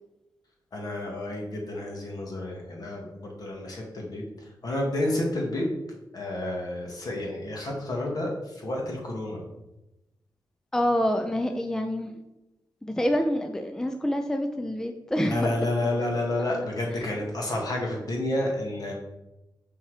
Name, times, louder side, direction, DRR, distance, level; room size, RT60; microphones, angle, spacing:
voice 1, 0.7-5.7 6.1-9.5 15.2-18.9, left 1 dB, 50° left, -1 dB, 2.0 m, -30 dB
voice 2, 10.7-12.1 12.8-15.5, equal, 5° left, 5 dB, 0.5 m, -27 dB
5.9 x 5.7 x 4.9 m, 0.98 s
wide cardioid pair, 120°, 8 cm